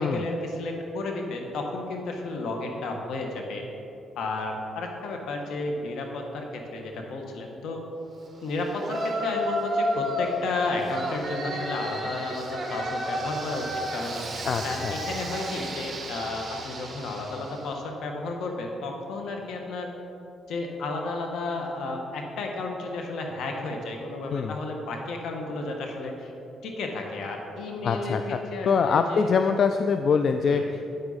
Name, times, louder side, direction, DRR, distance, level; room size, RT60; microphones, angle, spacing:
voice 1, 0.0-3.7 4.2-7.8 8.4-14.2 14.6-19.9 20.5-26.3 26.6-29.3 30.5-30.6, left 2 dB, 75° left, 2 dB, 1.3 m, -32 dB
Yell, 8.8-10.4 10.9-17.6, equal, 35° right, 1.4 m, -32 dB
voice 2, 14.4-14.9 24.3-24.5 27.8-30.9, left 5 dB, 55° left, 7 dB, 0.4 m, -24 dB
9.3 x 8.0 x 4.1 m, 2.8 s
cardioid pair, 90°, 0 cm